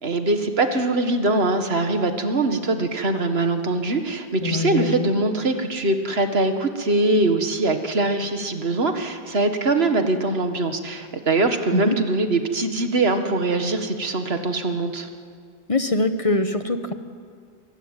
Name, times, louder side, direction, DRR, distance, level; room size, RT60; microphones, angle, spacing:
voice 1, 0.0-15.1, right 2 dB, 80° right, 7 dB, 1.9 m, -22 dB
voice 2, 4.4-5.1 11.7-12.0 15.7-16.9, left 2 dB, 35° left, 9 dB, 1.3 m, -23 dB
24.0 x 21.5 x 9.0 m, 2.1 s
omnidirectional pair, 1.0 m